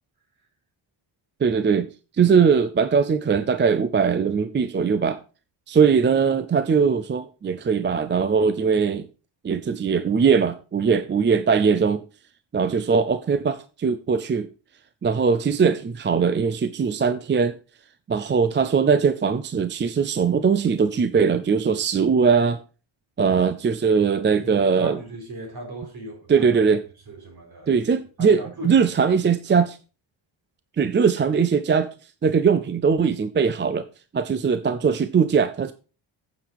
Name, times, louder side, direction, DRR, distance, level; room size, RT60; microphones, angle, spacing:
voice 1, 1.4-5.2 5.7-9.1 9.4-12.0 12.5-14.5 15.0-17.6 18.1-22.6 23.2-25.0 26.3-26.8 27.7-29.8 30.8-31.9 32.2-33.9 34.1-35.7, right 6 dB, 25° right, 0.4 m, -20 dB
voice 2, 24.3-26.5 27.1-27.7 28.2-28.9, right 1 dB, 50° right, 4.2 m, -37 dB
9.3 x 7.1 x 4.7 m
wide cardioid pair, 145°, 48 cm